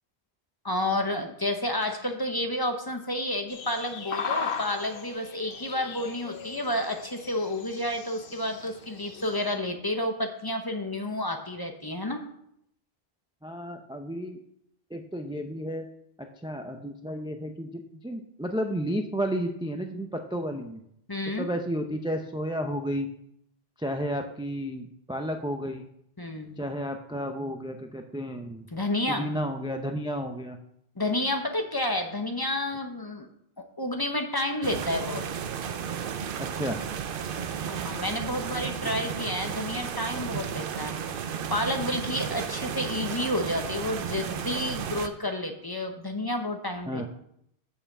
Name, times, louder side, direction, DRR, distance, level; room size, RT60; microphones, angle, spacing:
voice 1, 0.6-12.2 21.1-21.5 26.2-26.6 28.7-29.3 31.0-33.3 33.6-35.3 37.7-40.9 41.5-47.0, left 1 dB, 25° left, 5 dB, 0.8 m, -30 dB
sound 1, 3.5-9.5, left 5 dB, 60° left, 1.0 m, -38 dB
voice 2, 13.4-14.4 14.9-15.9 16.2-20.8 21.4-23.1 23.8-25.9 26.6-28.7 29.1-30.6 36.4-36.8 38.8-38.9 46.9-47.1, equal, 5° right, 5 dB, 0.4 m, -32 dB
sound 2, 34.6-45.1, right 7 dB, 60° right, 0.8 m, -33 dB
6.6 x 5.7 x 7.1 m, 0.74 s
omnidirectional pair, 1.1 m